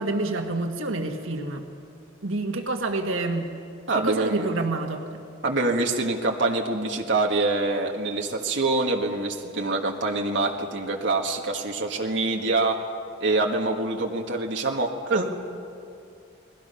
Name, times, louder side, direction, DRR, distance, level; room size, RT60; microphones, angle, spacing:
voice 1, 0.0-1.6 2.2-3.5 3.9-5.0, right 2 dB, 90° right, 4 dB, 1.7 m, -28 dB
voice 2, 3.9-4.5 5.4-12.8 13.2-15.3, right 2 dB, 65° right, 1 dB, 1.7 m, -25 dB
30.0 x 20.0 x 5.7 m, 2.5 s
head